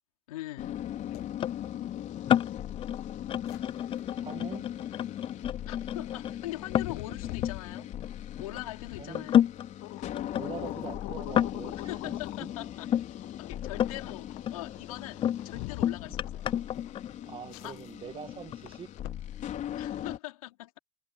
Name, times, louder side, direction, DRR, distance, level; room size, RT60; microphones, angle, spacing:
voice 1, 0.3-0.8 5.6-7.9 8.4-9.4 11.8-12.9 13.4-16.5 17.6-17.8 19.7-20.8, left 17 dB, 90° left, 4.4 m, -42 dB
sound 1, 0.6-20.2, left 11 dB, 45° left, 5.1 m, -40 dB
sound 2, 0.9-19.7, left 22 dB, 65° left, 1.3 m, -46 dB
sound 3, 1.4-8.6 9.1-13.1 13.6-14.1 14.5-17.6 18.3-18.8, left 10 dB, 30° left, 0.4 m, -31 dB
voice 2, 4.2-4.7 9.0-9.3 10.4-12.1 12.4-12.5 15.5-15.6 17.3-18.9, right 7 dB, 30° right, 2.1 m, -43 dB
supercardioid pair, 105°, 18 cm